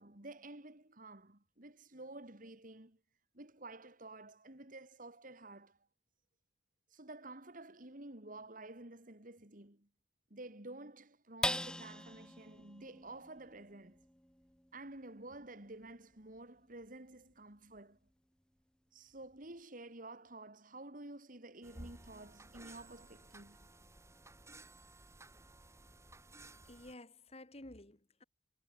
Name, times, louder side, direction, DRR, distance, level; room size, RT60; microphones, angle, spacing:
voice 1, 0.0-3.0 3.3-5.8 6.9-9.9 10.3-14.0 14.7-18.0 18.9-23.7, right 2 dB, 50° right, 3.4 m, -51 dB
sound 1, 11.4-18.1 18.6-18.7 19.1-19.6, left 1 dB, 5° left, 2.0 m, -44 dB
sound 2, 21.6-26.9, right 2 dB, 15° right, 3.6 m, -56 dB
voice 2, 26.6-28.2, left 1 dB, 35° left, 3.1 m, -53 dB
head